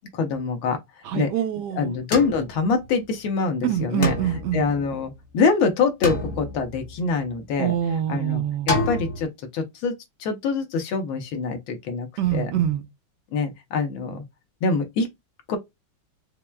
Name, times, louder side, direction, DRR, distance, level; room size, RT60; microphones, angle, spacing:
voice 1, 0.2-0.8 1.1-1.3 1.8-4.2 4.5-7.7 8.1-9.9 10.2-12.5 13.3-14.2 14.6-15.1 15.5-15.6, left 4 dB, 90° left, 1.6 m, -25 dB
voice 2, 1.0-1.9 3.6-4.7 7.6-8.8 12.2-12.8, right 10 dB, 70° right, 1.1 m, -25 dB
Hammering Metal various drums, 2.1-3.3 4.0-5.4 6.0-7.4 8.7-9.2, left 2 dB, 40° left, 0.8 m, -29 dB
5.7 x 2.2 x 2.2 m
omnidirectional pair, 2.2 m